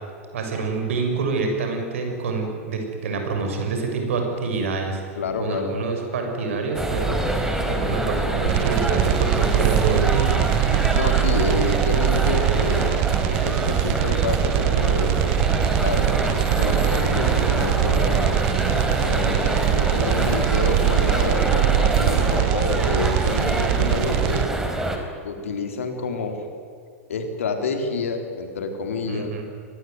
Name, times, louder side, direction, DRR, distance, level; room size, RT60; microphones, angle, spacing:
voice 1, 0.3-5.0 5.4-7.2 7.7-10.5 29.1-29.4, right 4 dB, 65° right, 3 dB, 6.8 m, -26 dB
voice 2, 5.2-5.8 7.7-7.8 10.9-13.1 13.4-15.5 15.8-18.3 19.0-24.5 25.2-26.5 27.1-29.3, left 4 dB, 70° left, 5 dB, 3.9 m, -28 dB
sound 1, 6.7-25.0, right 1 dB, 5° right, 4.1 m, -25 dB
sound 2, 8.5-24.5, right 20 dB, 45° right, 0.6 m, -22 dB
24.5 x 19.5 x 9.6 m, 2.2 s
figure-of-eight pair, 95°, 8 cm